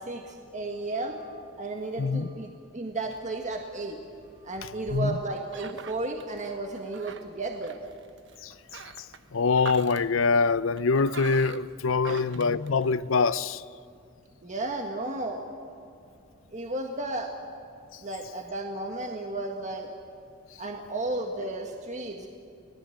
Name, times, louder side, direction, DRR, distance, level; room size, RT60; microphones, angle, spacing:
voice 1, 0.0-4.0 4.4-7.8 12.1-12.2 14.4-15.5 16.5-17.3 18.0-19.9 20.6-22.3, right 2 dB, 40° right, 1.7 m, -33 dB
voice 2, 2.0-2.3 4.9-5.2 8.4-8.8 9.3-13.6, left 4 dB, 85° left, 0.7 m, -24 dB
sound 1, 3.0-13.3, right 5 dB, 65° right, 1.1 m, -46 dB
26.0 x 18.5 x 7.8 m
head